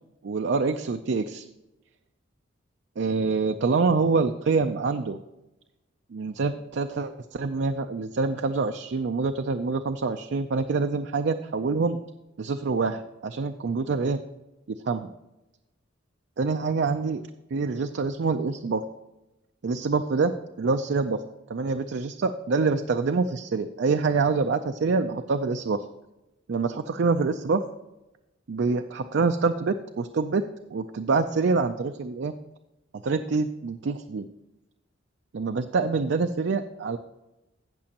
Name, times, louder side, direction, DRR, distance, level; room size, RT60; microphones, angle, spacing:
voice 1, 0.2-1.4 3.0-5.2 6.1-12.0 12.4-14.2 14.7-15.1 16.4-17.2 17.5-18.8 19.6-21.2 21.5-25.8 26.5-27.6 28.5-30.4 30.7-32.3 33.0-34.3 35.3-37.0, right 4 dB, 60° right, 7 dB, 0.4 m, -26 dB
17.0 x 6.1 x 2.9 m, 1.0 s
head